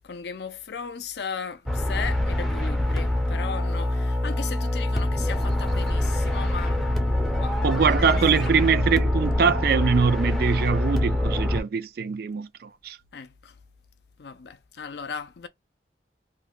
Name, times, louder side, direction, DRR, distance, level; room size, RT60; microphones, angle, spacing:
voice 1, 0.0-8.5 13.1-13.5 14.2-15.5, left 6 dB, 70° left, 0.5 m, -37 dB
sound 1, 1.7-11.6, left 1 dB, ahead, 0.5 m, -25 dB
voice 2, 7.6-13.0, right 6 dB, 55° right, 0.3 m, -23 dB
2.6 x 2.2 x 3.7 m
head